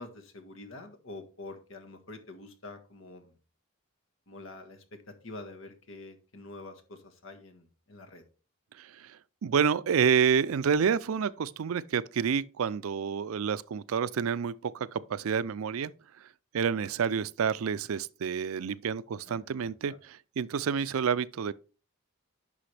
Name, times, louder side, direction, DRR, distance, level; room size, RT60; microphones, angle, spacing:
voice 1, 0.0-3.3 4.3-8.2 19.2-20.0, left 2 dB, 70° left, 1.4 m, -46 dB
voice 2, 8.8-15.9 16.2-16.3 16.5-21.5, right 7 dB, 90° right, 0.4 m, -29 dB
10.0 x 5.7 x 3.3 m
head